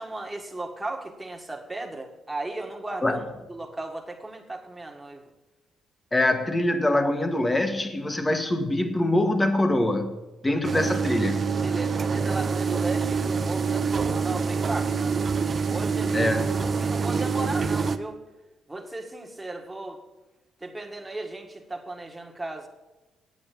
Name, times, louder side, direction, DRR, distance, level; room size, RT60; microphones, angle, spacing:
voice 1, 0.0-3.2 3.5-5.3 11.6-15.2 15.7-18.2 18.7-20.0 20.6-22.7, right 2 dB, 15° right, 1.7 m, -36 dB
voice 2, 6.1-10.1 10.4-11.4 16.1-16.6, left 1 dB, 15° left, 1.3 m, -24 dB
sound 1, 10.6-18.0, right 5 dB, 40° right, 0.7 m, -26 dB
8.7 x 8.7 x 7.6 m
cardioid pair, 90°, 0 cm